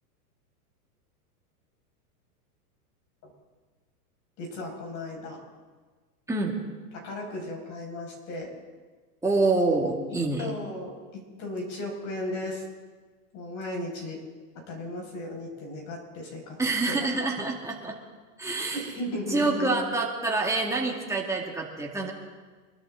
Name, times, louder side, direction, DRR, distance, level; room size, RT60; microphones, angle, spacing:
voice 1, 4.4-5.4 7.0-8.5 10.4-11.0 11.4-12.6 13.3-14.2 14.7-16.6 16.9-17.1 18.7-19.8, left 1 dB, 40° left, 0 dB, 5.9 m, -35 dB
voice 2, 9.2-10.5 16.6-18.0 18.4-22.1, right 3 dB, 5° right, -1 dB, 2.4 m, -27 dB
25.0 x 12.5 x 3.9 m, 1.4 s
hypercardioid pair, 135°, 46 cm